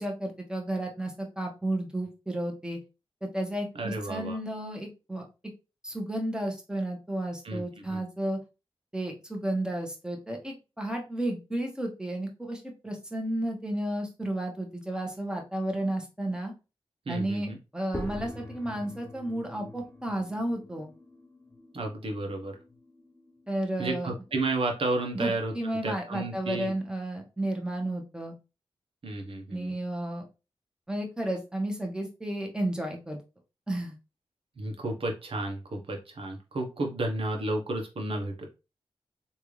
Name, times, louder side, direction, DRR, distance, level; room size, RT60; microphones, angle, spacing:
voice 1, 0.0-2.8 3.2-5.2 5.8-8.4 8.9-16.5 17.1-20.9 23.5-24.1 25.1-28.3 29.5-30.2 30.9-33.2 33.7-34.0, right 1 dB, 10° right, 1 dB, 1.2 m, -32 dB
voice 2, 3.7-4.4 7.4-7.6 7.9-8.0 17.1-17.6 21.7-22.6 23.8-25.5 25.8-26.7 29.0-29.7 34.6-38.5, right 2 dB, 60° right, 2 dB, 1.0 m, -32 dB
sound 1, 17.9-24.6, left 1 dB, 20° left, 0.6 m, -44 dB
3.3 x 2.6 x 3.1 m, 0.29 s
cardioid pair, 50°, 10 cm